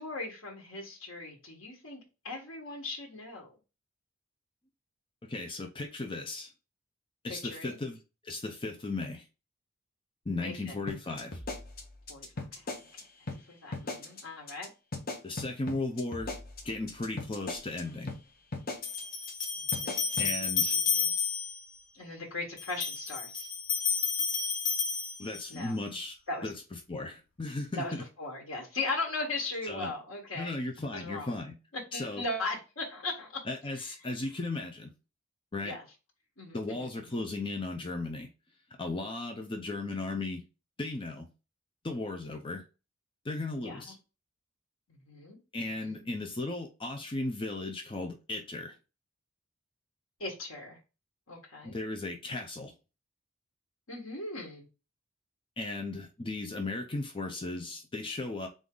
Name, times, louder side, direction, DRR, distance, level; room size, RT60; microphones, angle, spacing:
voice 1, 0.0-3.5 7.4-7.8 10.4-10.8 12.1-12.7 13.5-14.7 19.5-21.1 21.9-23.5 25.5-25.8 26.3-26.5 27.7-30.5 30.9-31.3 31.7-33.4 35.6-35.8 36.4-37.0 43.6-43.9 44.9-45.4 45.8-46.1 50.2-50.8 51.3-51.8 53.9-54.7, left 2 dB, 85° left, 1.4 m, -38 dB
voice 2, 5.2-6.5 7.2-9.2 10.3-11.4 15.2-16.3 16.6-18.1 20.2-20.8 25.2-26.1 26.4-26.5 26.9-28.0 29.6-29.9 30.4-31.6 31.9-32.2 33.4-34.9 35.5-35.8 36.5-38.3 38.8-40.4 40.8-41.3 41.8-42.6 43.2-44.0 45.5-48.7 51.6-52.7 55.6-58.5, left 2 dB, 25° left, 0.6 m, -36 dB
sound 1, 10.9-13.0 13.3-13.4 13.7-14.2 14.5-14.7 14.9-17.8 18.1-18.2 18.5-19.0 19.3-19.4 19.7-20.3, left 2 dB, 45° left, 1.1 m, -38 dB
sound 2, 17.5-17.6 18.8-21.6 22.6-25.6, left 6 dB, 60° left, 1.5 m, -31 dB
3.9 x 3.6 x 3.7 m
head